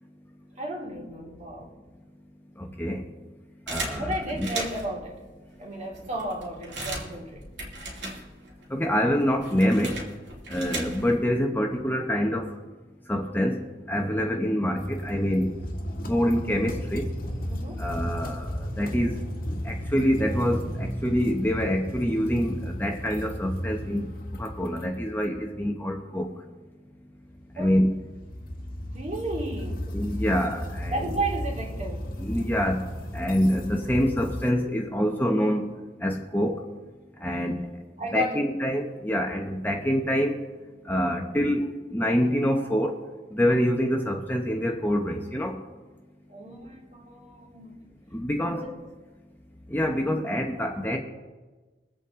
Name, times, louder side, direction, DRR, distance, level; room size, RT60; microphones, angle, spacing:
voice 1, 0.6-1.7 4.0-5.2 5.6-7.4 17.5-17.8 27.6-27.8 28.9-29.9 30.9-32.1 38.0-38.4 46.3-47.8 48.4-48.7, right 1 dB, 40° right, 2.4 m, -33 dB
voice 2, 2.6-3.0 3.7-4.5 8.7-10.0 10.5-12.5 13.1-13.6 13.9-15.6 16.0-17.1 17.8-19.2 19.6-26.3 27.5-28.0 29.9-31.0 32.2-32.9 33.1-35.7 36.0-36.6 37.2-37.6 38.1-40.5 40.9-43.0 43.3-45.6 48.1-48.7 49.7-51.0, equal, 10° left, 0.9 m, -26 dB
sound 1, 3.7-5.0 5.6-5.7 6.0-8.6 8.9-11.3, right 2 dB, 70° right, 2.7 m, -37 dB
sound 2, 14.7-25.4 27.3-34.5, equal, 55° left, 1.3 m, -34 dB
23.5 x 8.3 x 3.7 m
head